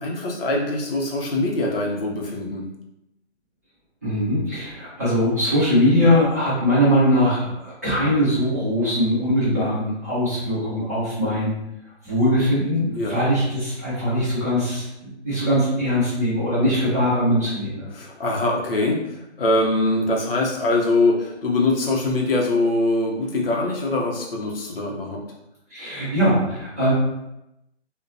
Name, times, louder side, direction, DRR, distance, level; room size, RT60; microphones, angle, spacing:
voice 1, 0.0-2.6 13.0-13.1 17.9-19.0 19.4-25.2, left 2 dB, 55° left, -1 dB, 0.7 m, -23 dB
voice 2, 4.0-11.6 12.0-17.9 25.7-26.9, equal, 15° right, -12 dB, 0.6 m, -21 dB
2.6 x 2.1 x 2.4 m, 0.87 s
hypercardioid pair, 160°, 35 cm